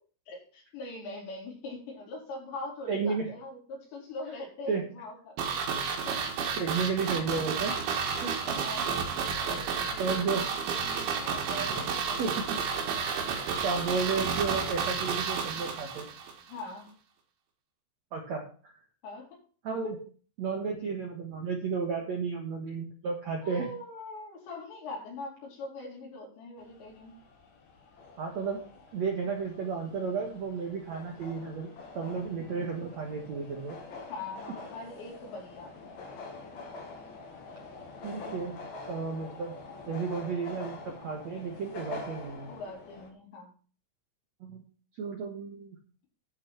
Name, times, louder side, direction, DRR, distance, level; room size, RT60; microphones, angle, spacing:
voice 1, 0.3-6.2 8.4-9.1 9.5-12.2 16.5-16.9 19.0-19.3 19.8-20.0 23.4-27.1 34.1-36.5 42.5-43.5, left 2 dB, 70° left, -3 dB, 6.2 m, -42 dB
voice 2, 2.9-3.3 4.7-4.8 6.6-7.8 8.2-8.3 10.0-10.5 11.7-11.8 12.2-12.7 13.4-16.1 18.1-18.7 19.6-20.0 20.4-23.6 28.2-28.6 28.9-31.7 32.0-33.8 38.0-38.6 38.9-39.6 39.9-42.5 44.4-44.6 44.9-45.8, right 5 dB, 65° right, 1 dB, 1.8 m, -33 dB
sound 1, 5.4-16.3 16.6-16.7, right 6 dB, 80° right, 4.3 m, -31 dB
sound 2, 26.6-43.1, left 4 dB, 50° left, 2.6 m, -46 dB
11.0 x 6.0 x 5.9 m, 0.41 s
omnidirectional pair, 5.3 m